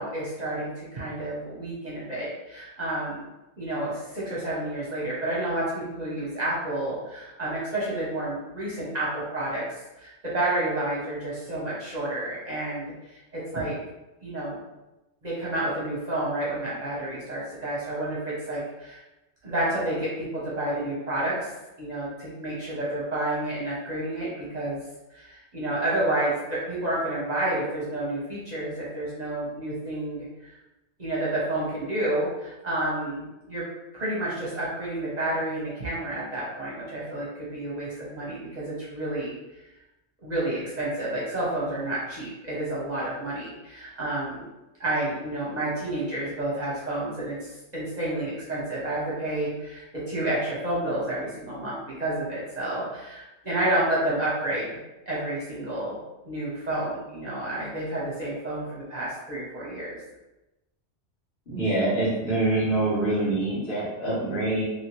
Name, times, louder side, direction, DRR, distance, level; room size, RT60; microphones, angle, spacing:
voice 1, 0.0-3.2 3.6-9.6 10.0-13.8 14.2-14.6 15.2-19.0 19.4-21.5 21.8-24.8 25.1-30.6 31.0-33.6 33.9-39.3 40.2-44.4 44.8-54.7 55.1-56.0 56.2-60.0, right 1 dB, 40° right, -7 dB, 0.9 m, -30 dB
voice 2, 61.5-64.6, right 2 dB, 65° left, -9 dB, 1.6 m, -25 dB
2.9 x 2.8 x 2.9 m, 1.0 s
omnidirectional pair, 1.2 m